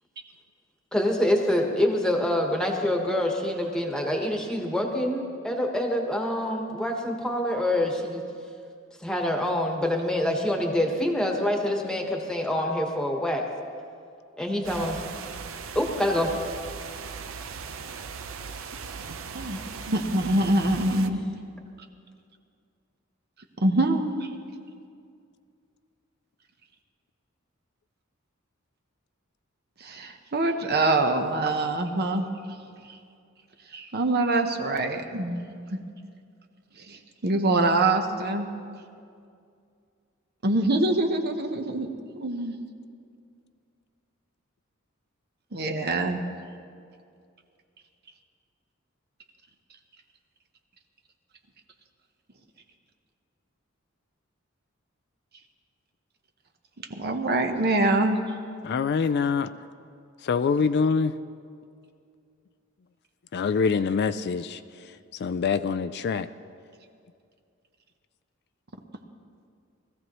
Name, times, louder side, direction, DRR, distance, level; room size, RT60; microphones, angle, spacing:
voice 1, 0.9-8.2 9.0-13.4 14.4-15.0 15.7-16.3 19.5-19.6, left 1 dB, 5° left, 1 dB, 1.3 m, -26 dB
sound 1, 14.6-21.1, right 5 dB, 70° right, 0.6 m, -38 dB
voice 2, 19.9-21.2 23.6-24.3 29.8-32.2 33.7-35.4 35.7-35.8 36.9-38.5 40.4-41.9 42.2-42.6 45.5-46.2 56.9-58.2, right 2 dB, 50° right, 5 dB, 0.9 m, -24 dB
voice 3, 58.6-59.5 60.2-61.1 63.3-66.3, left 5 dB, 55° left, 11 dB, 0.4 m, -25 dB
20.5 x 14.5 x 3.1 m, 2.3 s
head